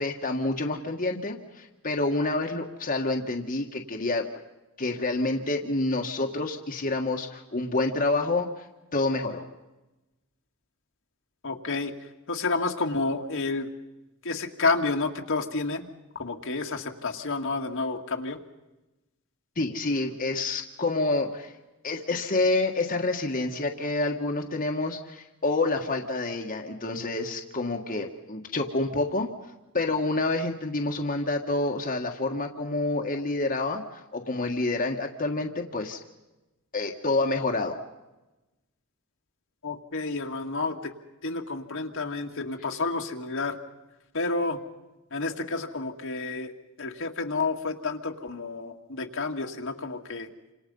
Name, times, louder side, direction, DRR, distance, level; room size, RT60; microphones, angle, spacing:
voice 1, 0.0-4.3 4.8-8.6 8.9-9.4 19.6-21.5 21.8-29.3 29.7-36.0 36.7-37.8, left 2 dB, 40° left, 2 dB, 1.7 m, -28 dB
voice 2, 11.4-11.9 12.3-13.7 14.2-15.9 16.2-18.4 39.6-40.9 41.2-43.6 44.1-44.6 45.1-46.5 46.8-50.3, left 3 dB, 60° left, 3 dB, 2.0 m, -30 dB
29.0 x 26.5 x 5.5 m, 1.1 s
head